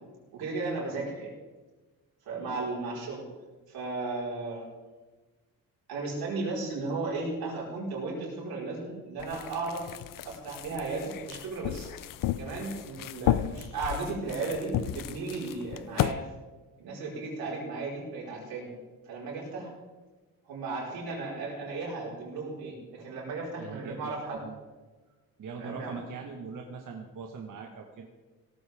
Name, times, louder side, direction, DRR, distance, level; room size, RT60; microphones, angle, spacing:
voice 1, 0.3-1.3 2.2-3.2 3.7-4.7 5.9-9.8 10.2-11.9 12.4-16.2 16.8-18.7 19.0-19.7 20.5-24.4 25.6-26.0, right 3 dB, 90° right, -3 dB, 4.8 m, -35 dB
sound 1, 9.2-16.1, left 12 dB, 65° left, 0.6 m, -33 dB
voice 2, 23.6-24.6 25.4-28.1, right 5 dB, 60° right, 1 dB, 1.5 m, -41 dB
17.5 x 13.5 x 3.6 m, 1.3 s
cardioid pair, 115°, 35 cm